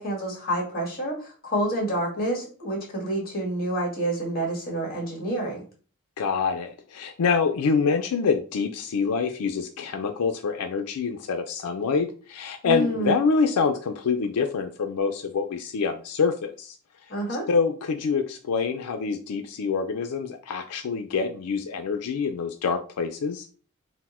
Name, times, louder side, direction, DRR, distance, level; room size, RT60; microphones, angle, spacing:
voice 1, 0.0-5.6 12.6-13.2 17.1-17.5, right 1 dB, 40° left, -2 dB, 1.7 m, -28 dB
voice 2, 6.2-16.8 17.5-23.5, left 5 dB, 90° left, 6 dB, 0.4 m, -26 dB
4.2 x 2.0 x 4.2 m, 0.39 s
head